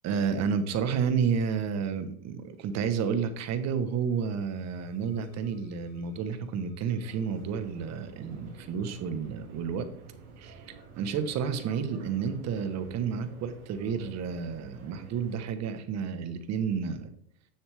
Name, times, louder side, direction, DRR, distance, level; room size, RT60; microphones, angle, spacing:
voice 1, 0.0-9.9 10.4-17.1, right 6 dB, 40° right, 10 dB, 1.3 m, -31 dB
sound 1, 3.7-13.5, left 9 dB, 50° left, 2.1 m, -56 dB
sound 2, 7.0-15.5, right 4 dB, 85° right, 2.6 m, -50 dB
10.0 x 7.1 x 3.6 m, 0.64 s
supercardioid pair, 115°, 42 cm